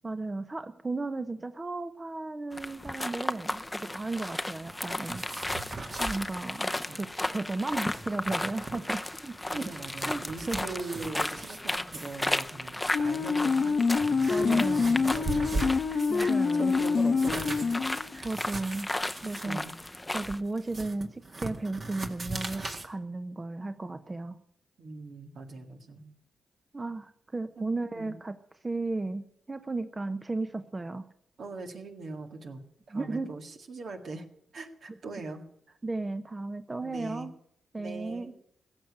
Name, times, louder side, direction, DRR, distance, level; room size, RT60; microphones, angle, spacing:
voice 1, 0.0-5.2 6.0-9.7 10.1-10.7 14.3-15.1 16.1-16.7 18.2-18.9 19.2-19.6 20.1-24.4 26.7-28.4 28.6-31.1 32.9-33.3 35.8-37.3 37.7-38.3, right 2 dB, 30° right, 10 dB, 0.8 m, -35 dB
sound 1, 2.5-20.4, left 1 dB, 15° left, 0.7 m, -35 dB
sound 2, 4.7-6.2 6.6-6.9 7.2-7.3 7.7-8.8 9.3-11.6 11.9-12.3 13.0-13.1 13.6-16.3 16.7-22.9, right 3 dB, 45° right, 2.0 m, -39 dB
voice 2, 9.5-16.3 16.6-17.7 18.1-18.3 19.4-19.7 24.8-26.1 27.6-28.2 31.4-34.3 34.5-35.4 35.7-35.8 36.8-37.3 37.8-38.3, right 3 dB, 70° right, 4 dB, 1.8 m, -41 dB
sound 3, 12.9-18.2, left 4 dB, 60° left, 0.8 m, -26 dB
16.0 x 6.6 x 9.6 m, 0.71 s
supercardioid pair, 55°, 0 cm